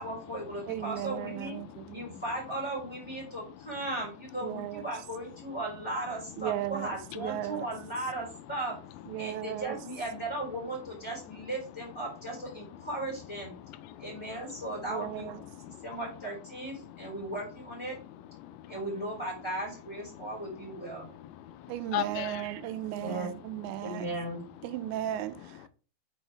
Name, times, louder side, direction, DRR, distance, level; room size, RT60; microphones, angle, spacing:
voice 1, 0.0-1.6 1.9-8.8 9.2-13.5 14.0-18.0 18.7-21.1 23.0-23.3 23.8-24.4, right 1 dB, 5° left, 2.8 m, -37 dB
voice 2, 0.7-2.0 4.4-4.9 6.4-7.7 9.1-9.8 14.9-15.4 21.7-24.1 24.6-25.4, right 14 dB, 90° right, 2.8 m, -36 dB
voice 3, 1.7-2.2 9.2-9.4 12.7-12.8 13.6-14.7 15.5-15.9 16.8-17.1 18.4-18.9 20.1-23.0 25.5-25.7, left 13 dB, 85° left, 2.7 m, -41 dB
6.3 x 5.9 x 3.4 m
omnidirectional pair, 5.0 m